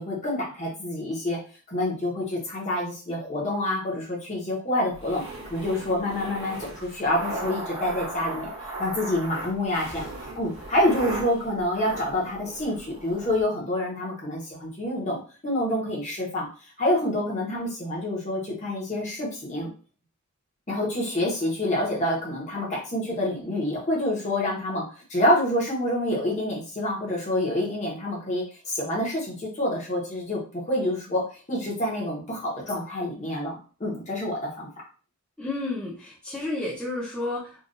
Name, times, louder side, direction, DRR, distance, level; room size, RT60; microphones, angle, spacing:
voice 1, 0.0-1.4 1.7-5.2 5.5-8.5 8.8-16.5 16.8-19.7 20.7-31.2 31.5-34.7, left 1 dB, 30° left, -4 dB, 1.1 m, -27 dB
sound 1, 4.9-13.4, right 2 dB, 70° right, 1.4 m, -37 dB
voice 2, 35.4-37.6, left 2 dB, 5° left, -9 dB, 0.8 m, -31 dB
3.8 x 2.5 x 2.6 m, 0.37 s
head